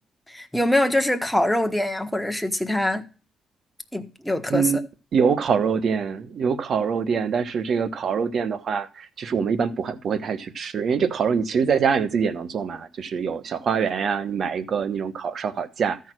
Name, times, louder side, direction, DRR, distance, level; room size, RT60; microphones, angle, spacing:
voice 1, 0.3-3.0 3.9-4.7, left 1 dB, 5° left, 1.1 m, -23 dB
voice 2, 5.1-16.0, right 6 dB, 55° right, 1.0 m, -24 dB
13.5 x 4.7 x 6.0 m
cardioid pair, 90°, 0 cm